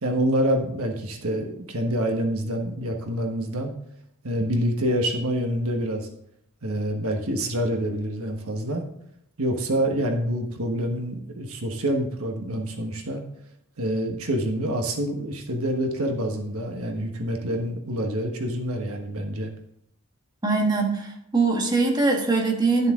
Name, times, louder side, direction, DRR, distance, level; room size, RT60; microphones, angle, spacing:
voice 1, 0.0-3.7 4.2-6.1 6.6-8.8 9.4-13.2 13.8-19.5, equal, 80° right, 3 dB, 1.4 m, -26 dB
voice 2, 20.4-22.9, right 3 dB, 20° right, 0 dB, 1.4 m, -22 dB
11.5 x 6.8 x 3.7 m, 0.73 s
head